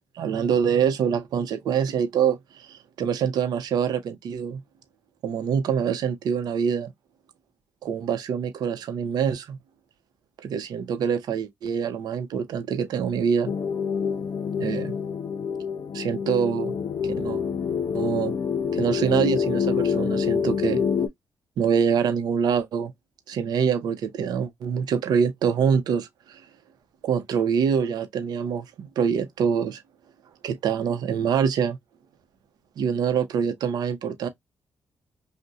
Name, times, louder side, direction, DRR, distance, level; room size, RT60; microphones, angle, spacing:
voice 1, 0.2-4.6 5.2-6.9 7.8-9.6 10.4-13.5 14.6-14.9 15.9-16.7 17.2-17.4 17.9-18.3 18.7-20.8 21.6-22.9 23.3-26.4 27.0-29.8 30.4-31.8 32.8-34.3, right 7 dB, 80° right, 0.7 m, -25 dB
sound 1, 13.4-21.1, left 7 dB, 60° left, 0.5 m, -26 dB
2.6 x 2.1 x 3.5 m
cardioid pair, 70°, 7 cm